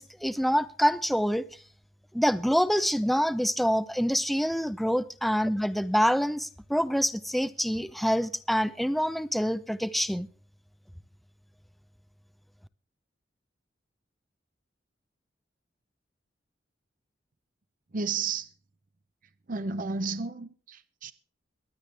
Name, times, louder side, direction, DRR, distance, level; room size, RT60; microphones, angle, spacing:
voice 1, 0.0-1.5 2.1-10.3, equal, ahead, 0.5 m, -26 dB
voice 2, 17.9-18.5 19.5-21.1, right 4 dB, 45° right, 0.7 m, -32 dB
23.0 x 9.2 x 3.4 m
head